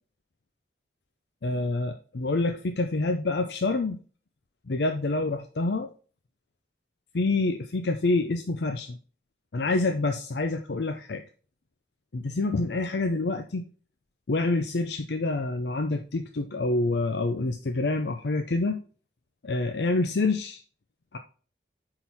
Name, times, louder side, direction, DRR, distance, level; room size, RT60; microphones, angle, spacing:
voice 1, 1.4-4.0 4.7-5.9 7.1-9.0 9.5-11.2 12.1-13.6 14.3-18.8 19.4-20.6 21.1-21.2, left 2 dB, 75° left, 5 dB, 0.6 m, -27 dB
8.8 x 3.9 x 4.1 m, 0.40 s
head